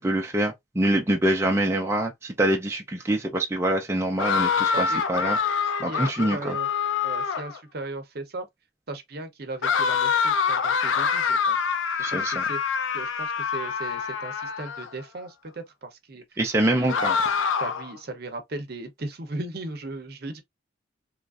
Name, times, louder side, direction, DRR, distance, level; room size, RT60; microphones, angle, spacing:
voice 1, 0.0-5.4 5.8-6.6 12.0-12.4 16.4-17.2, right 1 dB, 15° right, 0.4 m, -25 dB
sound 1, 4.2-7.6 9.6-14.9 16.9-17.9, left 6 dB, 75° left, 0.4 m, -25 dB
voice 2, 4.7-5.4 5.9-6.7 7.0-8.5 8.9-11.7 12.1-12.6 12.9-16.2 16.5-17.1 17.6-20.4, right 2 dB, 50° right, 0.7 m, -37 dB
3.0 x 2.4 x 2.3 m
head